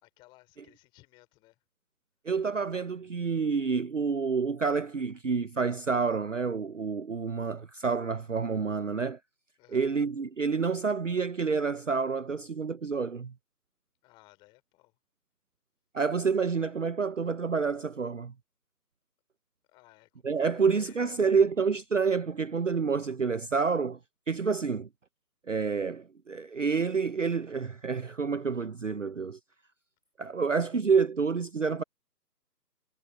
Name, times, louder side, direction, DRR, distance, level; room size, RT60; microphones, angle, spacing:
voice 1, 0.0-1.6 9.6-9.9 14.0-14.9 19.7-21.2, left 21 dB, 10° left, 4.5 m, -58 dB
voice 2, 2.2-9.2 9.7-13.3 15.9-18.3 20.2-24.0 24.3-24.9 25.5-29.4 30.2-31.8, right 5 dB, 50° right, 0.8 m, -28 dB
figure-of-eight pair, 155°, 49 cm